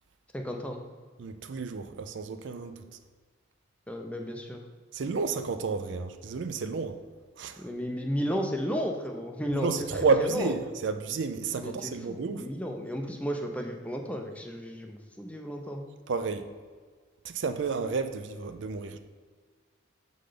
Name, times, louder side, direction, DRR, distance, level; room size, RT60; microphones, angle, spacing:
voice 1, 0.3-0.8 3.9-4.6 7.6-10.5 11.5-15.8, equal, 5° left, 3 dB, 0.5 m, -33 dB
voice 2, 1.2-2.8 4.9-7.0 7.4-7.6 9.5-12.5 16.1-16.5 17.2-19.0, right 4 dB, 60° right, 9 dB, 0.4 m, -31 dB
6.6 x 3.9 x 5.0 m, 1.6 s
head